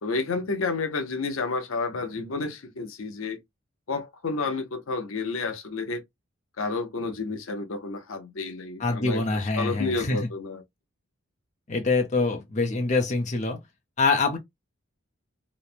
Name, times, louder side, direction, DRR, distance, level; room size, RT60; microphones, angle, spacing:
voice 1, 0.0-3.4 3.9-6.0 6.6-10.6, left 3 dB, 70° left, 0.7 m, -30 dB
voice 2, 8.8-10.2 11.7-13.6 14.0-14.4, left 3 dB, 35° left, 0.6 m, -25 dB
3.0 x 2.1 x 2.4 m
head